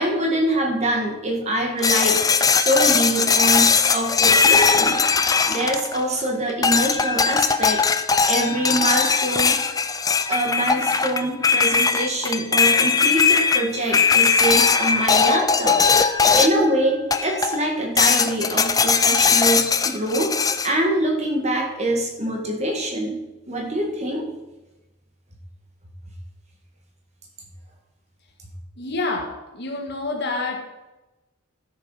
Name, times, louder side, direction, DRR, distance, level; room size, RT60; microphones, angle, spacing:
voice 1, 0.0-2.2 2.5-7.8 8.3-9.7 10.3-15.8 16.3-20.3 20.6-23.2 23.5-24.3, right 1 dB, 30° right, 1 dB, 1.8 m, -24 dB
sound 1, 1.8-6.2 6.6-16.7 17.1-17.6 18.0-20.7, left 5 dB, 15° left, 0.4 m, -19 dB
voice 2, 28.8-30.6, left 3 dB, 50° left, 2 dB, 1.7 m, -28 dB
12.5 x 6.9 x 5.6 m, 1.0 s
head